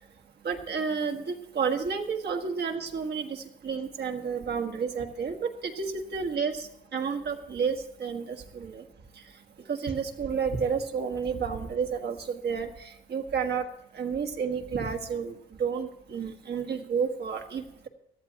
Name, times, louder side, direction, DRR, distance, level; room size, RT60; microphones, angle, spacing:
voice 1, 0.4-7.7 8.0-8.8 9.7-12.7 13.1-13.7 13.9-15.3 15.6-17.9, right 6 dB, 55° right, 4 dB, 1.5 m, -31 dB
17.5 x 12.0 x 2.9 m, 0.84 s
cardioid pair, 90°, 20 cm